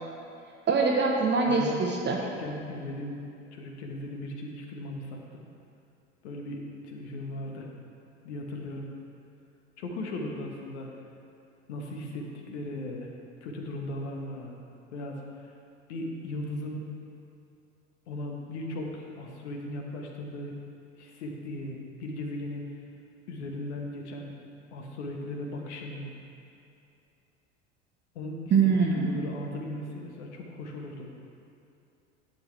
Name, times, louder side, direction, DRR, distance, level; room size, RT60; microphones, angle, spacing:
voice 1, 0.7-2.2 28.5-29.1, right 4 dB, 30° right, -1 dB, 1.0 m, -23 dB
voice 2, 2.2-3.2 3.5-5.2 6.2-7.7 8.2-8.9 9.8-10.9 11.7-13.1 13.4-14.5 14.9-15.2 15.9-16.8 18.1-20.5 21.0-22.6 23.3-24.3 24.7-26.1 28.1-28.4 28.6-31.1, left 1 dB, 65° left, 1 dB, 1.4 m, -37 dB
11.5 x 7.8 x 3.3 m, 2.7 s
figure-of-eight pair, 70°, 37 cm